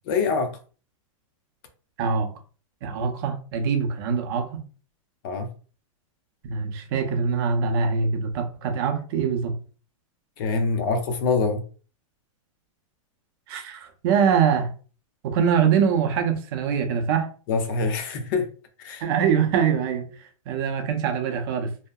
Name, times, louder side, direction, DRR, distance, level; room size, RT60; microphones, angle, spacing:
voice 1, 0.1-0.5 5.2-5.5 10.4-11.6 17.5-18.5 18.8-19.1, left 4 dB, 40° left, 0.5 m, -24 dB
voice 2, 2.0-2.3 2.8-4.6 6.4-9.5 13.5-14.7 15.2-17.3 19.0-20.0 20.5-21.7, right 6 dB, 45° right, 0.6 m, -23 dB
2.7 x 2.0 x 2.3 m
hypercardioid pair, 150°, 17 cm